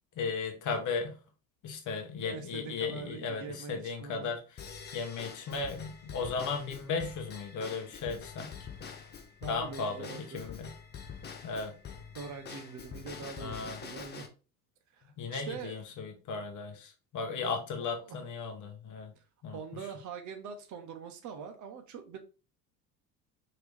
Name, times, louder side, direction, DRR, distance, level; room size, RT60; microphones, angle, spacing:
voice 1, 0.2-1.1 1.6-4.4 4.9-8.5 9.4-10.7 11.4-11.7 13.4-13.8 15.2-19.1 19.4-19.6, left 4 dB, 40° left, 4 dB, 1.0 m, -36 dB
voice 2, 2.2-4.4 9.4-10.4 12.1-14.3 14.9-15.8 17.8-18.2 19.5-22.2, right 6 dB, 40° right, 6 dB, 0.7 m, -43 dB
Drum kit / Drum / Bell, 4.6-14.3, left 6 dB, 25° left, 0.5 m, -46 dB
3.0 x 2.8 x 3.4 m, 0.34 s
hypercardioid pair, 65°, 46 cm